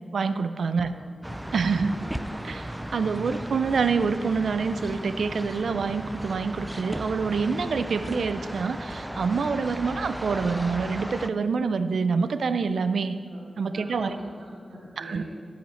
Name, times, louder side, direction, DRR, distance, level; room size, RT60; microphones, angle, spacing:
voice 1, 0.1-1.0 1.5-1.9 2.4-13.1 13.6-14.2 15.0-15.2, right 5 dB, 85° right, 11 dB, 0.4 m, -26 dB
sound 1, 1.2-11.3, right 1 dB, 10° right, 0.4 m, -36 dB
voice 2, 1.8-2.1 13.3-13.4 13.7-15.2, right 1 dB, 65° right, -10 dB, 2.4 m, -43 dB
14.5 x 5.7 x 4.3 m, 2.1 s
cardioid pair, 50°, 0 cm